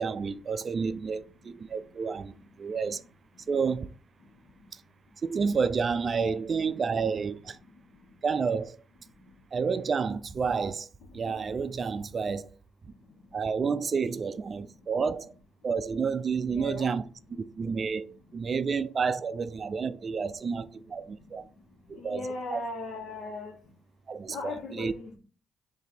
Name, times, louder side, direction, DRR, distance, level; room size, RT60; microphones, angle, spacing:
voice 1, 0.0-3.0 3.5-3.9 4.7-4.8 5.2-7.6 8.2-8.8 9.5-10.9 11.1-12.5 12.8-12.9 13.3-15.3 15.6-17.0 17.3-21.5 21.9-22.2 22.5-22.6 24.1-24.9, right 5 dB, 45° right, 0.3 m, -30 dB
voice 2, 16.5-16.9 21.9-23.5 24.3-25.2, left 3 dB, 65° left, 1.2 m, -38 dB
3.9 x 2.6 x 4.3 m
supercardioid pair, 55°, 0 cm